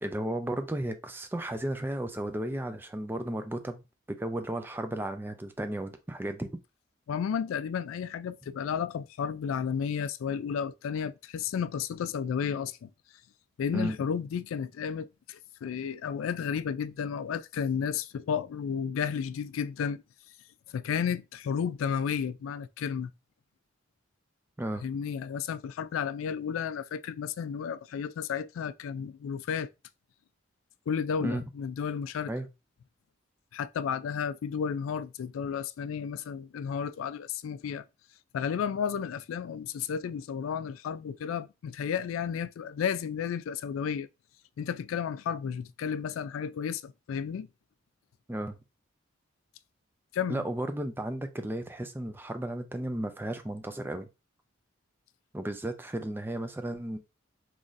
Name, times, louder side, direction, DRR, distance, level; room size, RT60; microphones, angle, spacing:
voice 1, 0.0-3.8 4.1-6.5 13.7-14.0 24.6-24.8 31.2-31.4 32.3-32.5 48.3-48.6 50.3-54.1 55.3-57.0, right 1 dB, 10° right, 0.3 m, -34 dB
voice 2, 7.1-12.9 13.6-20.0 20.7-23.1 24.8-29.7 30.9-32.3 33.5-37.8 38.3-44.1 44.6-47.5 50.1-50.4, left 7 dB, 85° left, 0.3 m, -32 dB
3.9 x 3.1 x 2.5 m
head